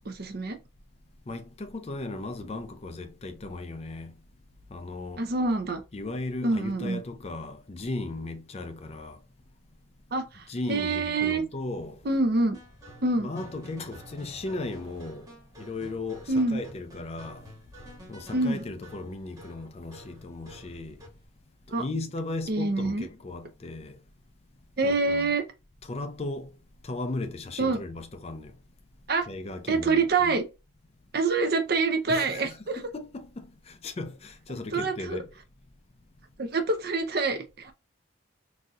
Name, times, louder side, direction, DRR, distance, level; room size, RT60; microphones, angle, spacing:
voice 1, 0.1-0.6 5.2-5.8 6.4-7.0 10.1-11.4 12.1-12.6 13.0-13.3 16.3-16.6 18.3-18.6 21.7-21.8 22.5-23.1 24.8-25.4 27.6-27.8 29.1-29.3 29.7-30.4 31.1-32.8 34.7-35.2 36.4-37.7, right 3 dB, 50° right, 0.6 m, -26 dB
voice 2, 1.3-4.1 4.7-5.3 5.9-9.2 10.5-12.0 13.2-15.3 15.6-17.5 18.1-21.0 21.7-24.0 24.8-25.3 25.8-26.5 26.8-28.5 29.3-30.4 32.1-35.3, left 2 dB, 30° left, 0.4 m, -36 dB
sound 1, 12.5-21.3, equal, 15° right, 1.4 m, -49 dB
4.0 x 2.7 x 2.4 m
head